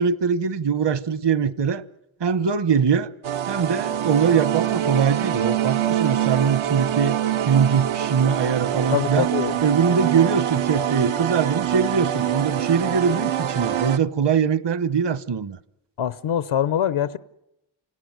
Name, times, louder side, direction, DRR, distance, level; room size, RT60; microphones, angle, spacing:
voice 1, 0.0-1.8 2.2-3.1 3.5-9.3 9.6-15.6, right 6 dB, 60° right, 1.1 m, -22 dB
sound 1, 3.2-14.0, right 11 dB, 85° right, 0.9 m, -25 dB
voice 2, 8.9-9.6 16.0-17.2, left 10 dB, 90° left, 0.9 m, -23 dB
28.0 x 18.0 x 9.4 m
cardioid pair, 70°, 47 cm